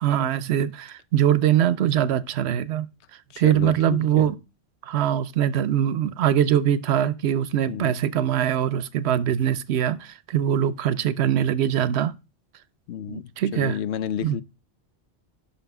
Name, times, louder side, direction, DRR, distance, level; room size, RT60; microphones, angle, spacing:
voice 1, 0.0-2.9 3.4-4.4 4.8-12.1 13.1-13.8 14.2-14.4, right 10 dB, 80° right, 0.9 m, -22 dB
voice 2, 3.3-4.3 7.7-7.9 12.9-14.4, left 9 dB, 90° left, 0.9 m, -31 dB
5.9 x 5.7 x 5.9 m
omnidirectional pair, 1.1 m